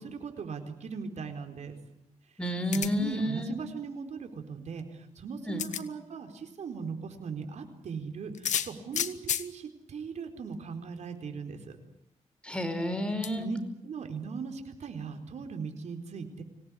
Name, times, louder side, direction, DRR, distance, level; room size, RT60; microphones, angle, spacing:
voice 1, 0.0-1.8 2.7-11.7 13.4-13.6 13.8-16.4, right 5 dB, 70° right, 5 dB, 4.4 m, -39 dB
voice 2, 2.4-3.7 5.4-5.7 12.4-13.5, equal, 10° left, 8 dB, 4.9 m, -31 dB
sound 1, 2.7-3.1 4.8-4.9 5.6-5.9 8.3-9.5 10.5-10.6 11.0-11.1 13.2-13.3, left 9 dB, 85° left, 1.4 m, -31 dB
26.0 x 18.0 x 10.0 m, 0.81 s
cardioid pair, 95°, 12 cm